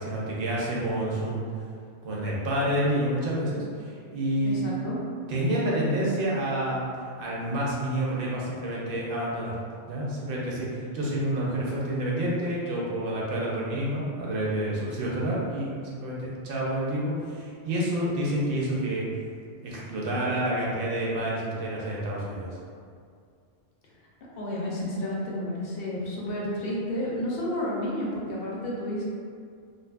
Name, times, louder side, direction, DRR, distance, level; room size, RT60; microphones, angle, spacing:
voice 1, 0.0-1.4 2.0-4.6 5.3-6.8 7.2-9.6 9.9-19.1 19.6-22.6, right 1 dB, 60° right, -5 dB, 0.7 m, -28 dB
voice 2, 4.4-5.0 24.4-29.0, left 1 dB, 65° left, -5 dB, 0.7 m, -31 dB
2.5 x 2.3 x 2.3 m, 2.2 s
omnidirectional pair, 1.2 m